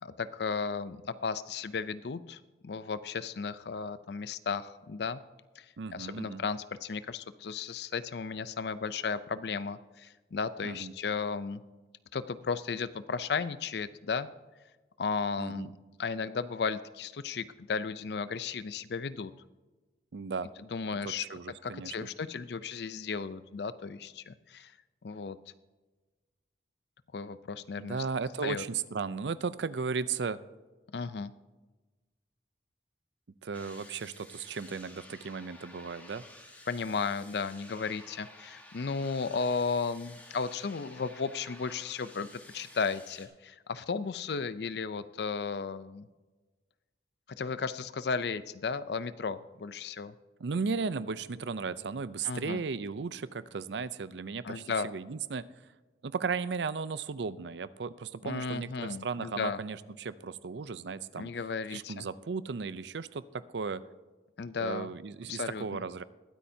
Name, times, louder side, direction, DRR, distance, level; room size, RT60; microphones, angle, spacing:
voice 1, 0.0-5.2 5.6-5.7 5.9-11.6 12.1-14.3 15.0-15.7 16.0-19.3 20.7-21.3 21.6-24.7 25.0-25.4 27.1-28.0 28.4-28.6 30.9-31.3 36.7-46.1 47.4-50.1 52.2-52.6 54.4-54.9 58.2-59.6 61.1-62.1 64.4-64.9 65.3-65.8, left 5 dB, 70° left, 14 dB, 0.5 m, -34 dB
voice 2, 5.8-6.4 10.6-10.9 15.4-15.7 20.1-20.5 21.0-22.1 27.7-30.4 33.4-36.2 50.4-55.5 56.0-61.3 61.7-63.8 64.6-66.0, right 5 dB, 85° right, 15 dB, 0.5 m, -35 dB
sound 1, 33.5-43.3, left 1 dB, 10° left, 1.4 m, -53 dB
21.5 x 8.6 x 2.7 m, 1.2 s
head